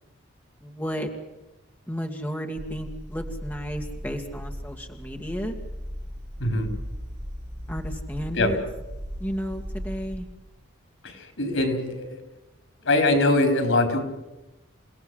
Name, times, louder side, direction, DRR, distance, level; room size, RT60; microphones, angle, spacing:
voice 1, 0.6-1.1 1.9-5.5 7.7-8.6 9.2-10.3, equal, 10° left, 2 dB, 2.1 m, -32 dB
sound 1, 2.6-10.2, equal, 45° right, 7.0 m, -37 dB
voice 2, 11.0-12.2 12.8-14.0, left 2 dB, 85° left, 6 dB, 4.5 m, -22 dB
29.0 x 17.5 x 7.9 m, 1.0 s
head